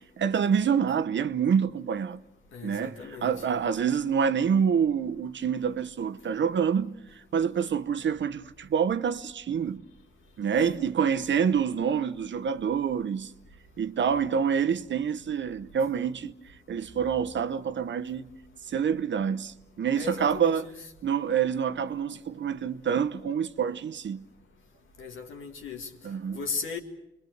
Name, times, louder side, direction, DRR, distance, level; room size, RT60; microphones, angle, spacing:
voice 1, 0.2-2.2 2.6-6.9 7.3-9.8 10.4-13.3 13.8-16.3 16.7-18.3 18.7-20.7 21.0-24.2 26.0-26.4, right 7 dB, 70° right, 0.8 m, -27 dB
voice 2, 2.5-3.5 10.5-10.8 19.9-20.8 25.0-25.9 26.3-26.8, left 4 dB, 85° left, 2.1 m, -37 dB
27.0 x 21.5 x 7.9 m
cardioid pair, 55°, 20 cm